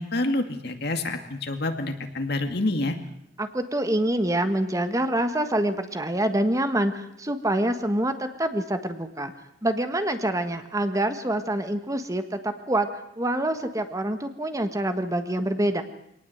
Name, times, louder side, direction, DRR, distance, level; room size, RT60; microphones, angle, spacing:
voice 1, 0.0-3.0, left 2 dB, 65° left, 6 dB, 2.3 m, -27 dB
voice 2, 3.4-9.3 9.6-12.9 13.2-15.8, right 1 dB, 20° right, 8 dB, 1.4 m, -26 dB
24.0 x 18.5 x 8.0 m, 0.75 s
head